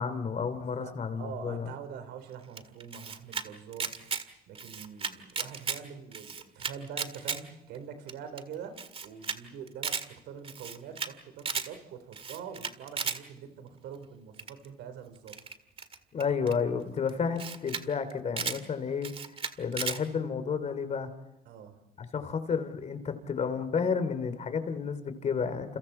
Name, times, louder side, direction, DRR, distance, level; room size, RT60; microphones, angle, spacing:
voice 1, 0.0-1.7 16.1-19.1 19.6-21.1 22.0-25.8, left 6 dB, 40° left, 11 dB, 2.9 m, -31 dB
voice 2, 0.7-3.9 4.5-15.3 21.5-21.8, right 7 dB, 85° right, 9 dB, 4.2 m, -44 dB
Camera, 2.6-3.4 3.7-4.2 4.5-5.8 6.1-7.4 7.7-7.8 8.1-8.2 8.4-8.5 8.8-9.4 9.7-10.0 10.4-11.1 11.4-11.7 12.1-13.2 14.4-14.7 15.3-16.5 17.1-17.2 17.4-17.8 18.1-18.6 19.0-20.0, right 6 dB, 35° right, 1.9 m, -34 dB
30.0 x 29.0 x 4.4 m, 0.93 s
cardioid pair, 110°, 17 cm